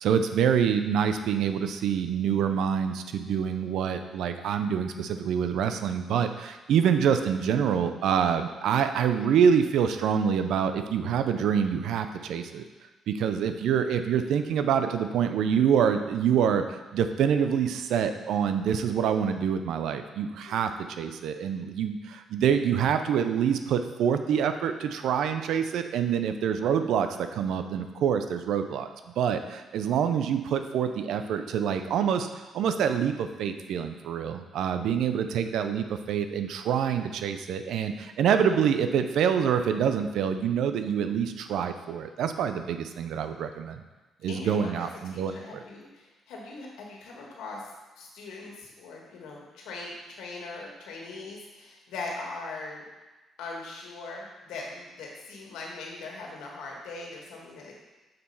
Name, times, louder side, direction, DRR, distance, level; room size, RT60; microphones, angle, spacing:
voice 1, 0.0-12.6 13.1-20.7 21.0-28.9 29.2-43.8 44.2-45.6, right 8 dB, 80° right, 8 dB, 0.5 m, -26 dB
voice 2, 44.3-47.7 48.0-52.8 53.4-57.7, left 3 dB, 90° left, -2 dB, 1.6 m, -40 dB
6.6 x 4.3 x 5.5 m, 1.2 s
cardioid pair, 90°, 0 cm